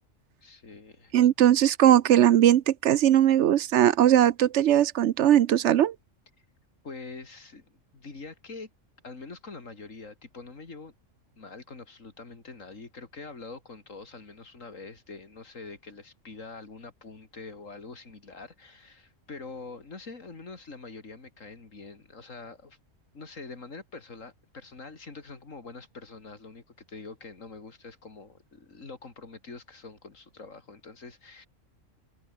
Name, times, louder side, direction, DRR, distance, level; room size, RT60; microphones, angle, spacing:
voice 1, 0.4-1.1 6.8-7.6 7.9-8.7 9.0-10.9 11.4-22.8 23.1-31.5, left 3 dB, 80° left, 3.4 m, -44 dB
voice 2, 1.1-5.9, right 11 dB, 70° right, 0.9 m, -20 dB
omnidirectional pair, 1.3 m